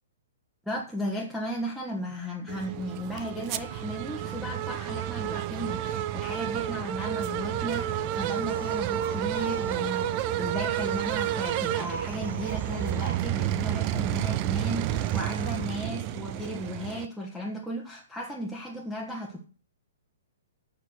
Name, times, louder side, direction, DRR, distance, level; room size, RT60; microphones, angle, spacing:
voice 1, 0.6-19.4, equal, ahead, 1.4 m, -35 dB
sound 1, 2.5-17.1, right 12 dB, 30° right, 0.6 m, -30 dB
sound 2, 7.7-10.2 10.6-13.3 14.9-15.7, right 4 dB, 60° right, 2.4 m, -42 dB
8.5 x 6.1 x 7.9 m
figure-of-eight pair, 115°, 0 cm